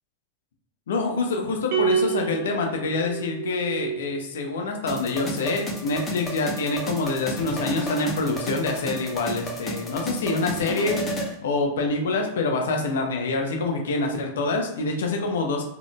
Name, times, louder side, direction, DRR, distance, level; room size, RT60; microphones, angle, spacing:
voice 1, 0.9-11.0 11.4-15.6, left 3 dB, 60° left, 2 dB, 0.6 m, -26 dB
sound 1, 1.7-4.2, right 7 dB, 45° right, 0.4 m, -28 dB
sound 2, 4.9-11.3, equal, 20° left, 0.7 m, -32 dB
3.7 x 2.1 x 2.2 m, 0.83 s
figure-of-eight pair, 90°, 0 cm